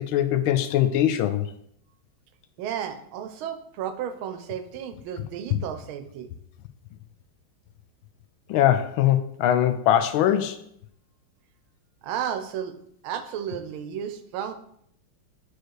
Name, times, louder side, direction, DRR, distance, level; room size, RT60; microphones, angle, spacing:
voice 1, 0.0-1.5 5.5-5.6 8.5-10.6, left 11 dB, 80° left, 9 dB, 1.4 m, -22 dB
voice 2, 2.6-6.3 12.0-12.8 13.0-14.5, right 9 dB, 80° right, 8 dB, 1.4 m, -33 dB
4.7 x 4.7 x 4.6 m, 0.68 s
omnidirectional pair, 2.3 m